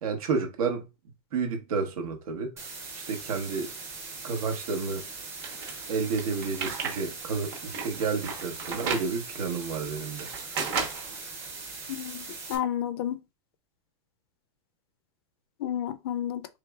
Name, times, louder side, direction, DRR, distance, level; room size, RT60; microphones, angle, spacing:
voice 1, 0.0-0.8 1.3-2.5 2.9-3.7 4.2-5.1 5.9-10.3, right 5 dB, 80° right, 1.2 m, -30 dB
sound 1, 2.6-12.6, right 3 dB, 15° right, 0.6 m, -41 dB
sound 2, 5.4-7.0 7.3-9.1 9.7-11.2, right 5 dB, 35° right, 1.0 m, -33 dB
voice 2, 11.9-13.2 15.6-16.5, left 10 dB, 45° left, 0.4 m, -31 dB
4.6 x 3.3 x 2.3 m
supercardioid pair, 180°, 18 cm